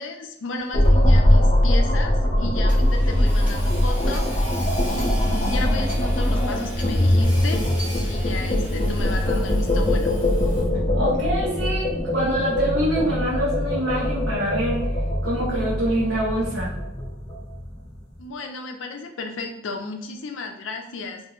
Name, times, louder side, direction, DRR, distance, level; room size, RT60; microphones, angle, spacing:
voice 1, 0.0-4.5 4.9-7.8 8.0-10.2 18.2-21.2, left 3 dB, 85° left, 4 dB, 0.5 m, -34 dB
sound 1, 0.7-18.0, left 1 dB, 30° left, 0.6 m, -21 dB
Hammer / Sawing, 2.7-10.9, equal, 10° right, 0.9 m, -40 dB
voice 2, 10.9-14.9 15.2-16.7, right 1 dB, 75° right, -7 dB, 0.8 m, -25 dB
3.0 x 2.5 x 2.4 m, 0.80 s
head